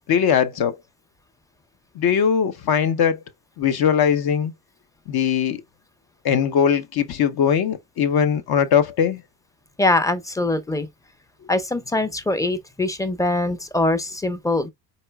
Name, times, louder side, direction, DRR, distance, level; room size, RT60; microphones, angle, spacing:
voice 1, 0.1-0.8 2.0-3.2 3.6-4.5 5.1-5.6 6.2-9.2, left 8 dB, 50° left, 0.7 m, -20 dB
voice 2, 9.8-10.9 11.5-14.7, left 2 dB, 5° left, 0.6 m, -23 dB
4.2 x 3.9 x 2.2 m
supercardioid pair, 75°, 49 cm